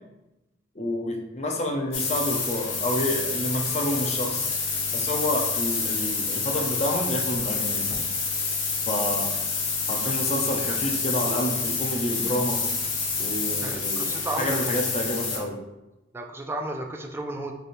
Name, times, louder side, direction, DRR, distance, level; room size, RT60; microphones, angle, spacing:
voice 1, 0.7-4.5 4.9-7.9 8.9-9.3 9.9-12.6 13.2-15.6, left 1 dB, 35° left, 2 dB, 0.6 m, -29 dB
sound 1, 1.9-15.4, left 4 dB, 85° left, 0.9 m, -28 dB
voice 2, 13.6-14.8 15.4-15.5 16.1-17.5, right 1 dB, 10° right, 3 dB, 0.3 m, -33 dB
4.1 x 3.3 x 2.5 m, 0.96 s
head